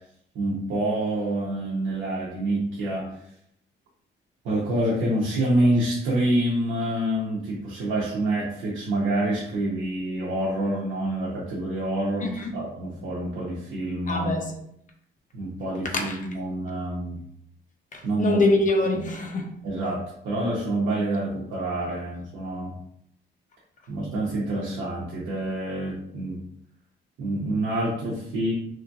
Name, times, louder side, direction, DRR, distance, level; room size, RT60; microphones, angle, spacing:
voice 1, 0.3-3.2 4.4-14.3 15.3-17.2 18.0-18.4 19.6-22.8 23.9-26.4 27.2-28.5, right 1 dB, 85° right, 0.8 m, -27 dB
voice 2, 12.2-12.5 14.1-14.5 15.9-16.2 17.9-19.5, left 2 dB, 40° left, 0.6 m, -24 dB
3.0 x 2.7 x 2.3 m
cardioid pair, 90°, 20 cm